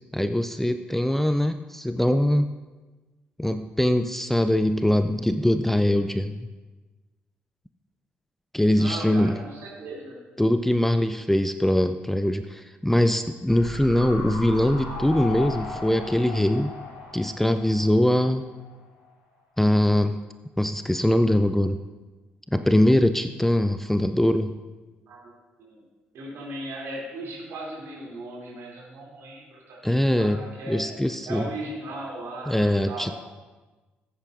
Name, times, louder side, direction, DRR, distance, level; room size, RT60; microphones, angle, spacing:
voice 1, 0.1-2.5 3.4-6.4 8.5-9.4 10.4-16.7 17.1-18.5 19.6-20.2 20.6-21.8 22.5-24.6 29.8-31.5 32.5-33.2, left 1 dB, 5° left, 10 dB, 0.4 m, -22 dB
voice 2, 8.7-10.2 25.1-25.3 25.6-25.8 26.1-30.9 31.3-33.1, right 2 dB, 55° right, -3 dB, 3.0 m, -37 dB
sound 1, 13.5-18.7 19.0-19.1, left 2 dB, 60° left, 2.6 m, -36 dB
15.5 x 8.9 x 2.6 m, 1.2 s
figure-of-eight pair, 45°, 5 cm